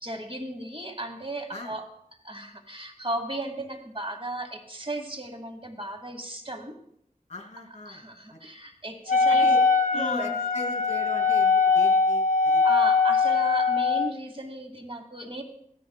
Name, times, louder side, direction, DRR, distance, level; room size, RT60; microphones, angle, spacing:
voice 1, 0.0-1.9 2.2-6.8 7.9-9.5 9.9-10.4 12.6-15.4, right 1 dB, 35° right, 5 dB, 1.3 m, -35 dB
voice 2, 7.3-8.0 9.3-9.6 9.9-12.6, left 1 dB, 45° left, 1 dB, 2.7 m, -38 dB
Wind instrument woodwind instrument, 9.1-14.1, left 4 dB, 65° left, 0.6 m, -22 dB
15.0 x 13.5 x 2.3 m, 0.70 s
wide cardioid pair, 50°, 15 cm